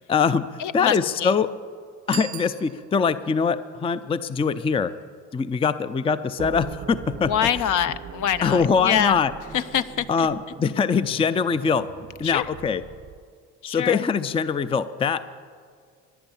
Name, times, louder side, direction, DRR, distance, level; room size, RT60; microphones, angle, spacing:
voice 1, 0.1-0.5 0.7-1.5 2.1-4.9 5.3-7.3 8.4-9.3 10.1-11.9 12.2-12.8 13.7-15.2, left 6 dB, 15° left, 14 dB, 0.4 m, -23 dB
voice 2, 0.6-1.3 7.2-9.2 9.5-10.3 12.2-12.4 13.6-14.0, left 10 dB, 55° left, 13 dB, 0.7 m, -25 dB
Bicycle bell, 2.0-3.3, right 16 dB, 75° right, 0.5 m, -38 dB
sound 1, 6.4-13.3, right 7 dB, 30° right, 0.6 m, -41 dB
14.5 x 10.5 x 7.1 m, 2.1 s
supercardioid pair, 75°, 38 cm